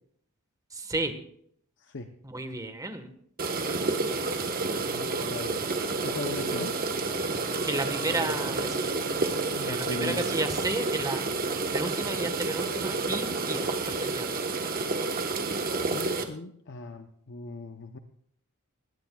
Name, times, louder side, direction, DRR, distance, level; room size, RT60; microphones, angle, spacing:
voice 1, 0.7-1.2 2.2-3.1 7.6-8.9 9.6-11.2 11.7-14.3, right 2 dB, 15° right, 7 dB, 1.4 m, -32 dB
voice 2, 1.8-2.1 4.9-5.7 6.0-6.8 9.5-10.2 15.6-18.0, left 2 dB, 55° left, 6 dB, 0.8 m, -38 dB
sound 1, 3.4-16.2, right 3 dB, 40° right, 1.3 m, -30 dB
sound 2, 6.4-11.8 12.0-12.1, left 2 dB, 30° left, 1.6 m, -46 dB
20.5 x 17.0 x 2.4 m, 0.67 s
head